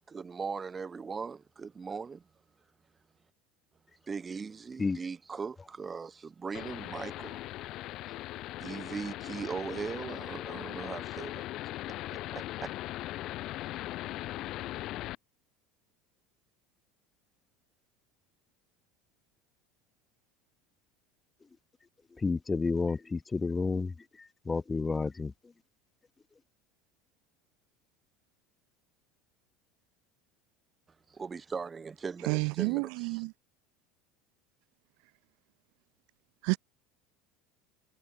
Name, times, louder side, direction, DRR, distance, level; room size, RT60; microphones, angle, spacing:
voice 1, 0.1-2.2 4.1-7.4 8.6-11.4 12.3-12.7 31.1-33.2, right 5 dB, 25° right, 2.0 m, -39 dB
sound 1, 6.5-15.2, left 16 dB, 55° left, 0.5 m, -39 dB
voice 2, 22.2-25.3, left 4 dB, 15° left, 0.8 m, -31 dB
voice 3, 32.3-33.3 36.4-36.6, right 38 dB, 70° right, 0.3 m, -29 dB
supercardioid pair, 105°, 0 cm